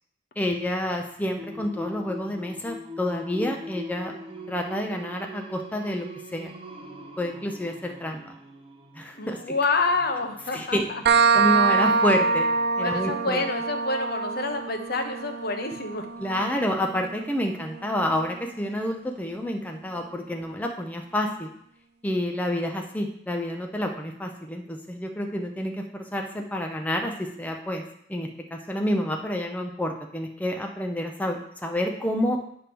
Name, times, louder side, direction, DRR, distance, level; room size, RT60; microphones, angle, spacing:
voice 1, 0.4-4.1 4.5-6.1 6.3-6.5 7.2-8.4 9.0-9.6 10.5-10.9 11.3-12.5 12.8-13.4 16.2-21.5 22.0-27.8 28.1-32.4, left 1 dB, 10° left, 2 dB, 0.5 m, -29 dB
Singing, 1.4-13.1, left 1 dB, 30° right, 0.7 m, -42 dB
voice 2, 9.2-10.8 11.8-12.0 12.8-16.1, left 3 dB, 55° left, 5 dB, 0.8 m, -28 dB
sound 1, 11.1-18.5, right 5 dB, 60° right, 0.4 m, -25 dB
8.9 x 3.4 x 6.0 m, 0.71 s
head